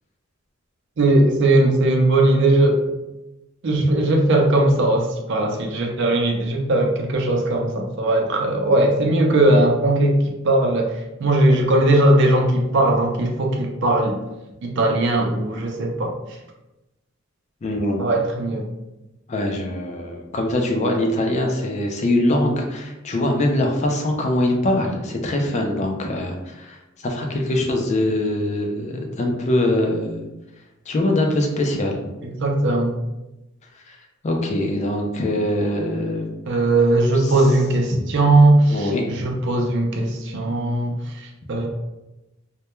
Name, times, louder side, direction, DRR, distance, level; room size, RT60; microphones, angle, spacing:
voice 1, 1.0-2.8 3.6-10.2 10.4-10.9 11.2-14.2 14.6-16.1 18.0-18.7 32.2-32.9 36.5-41.7, right 2 dB, 60° right, 1 dB, 0.5 m, -19 dB
voice 2, 17.6-18.1 19.3-30.3 30.9-32.0 33.9-34.0 34.2-36.3 37.1-37.3 37.9-38.1 38.7-39.3, left 1 dB, 35° left, 2 dB, 0.4 m, -23 dB
2.2 x 2.1 x 2.9 m, 0.97 s
head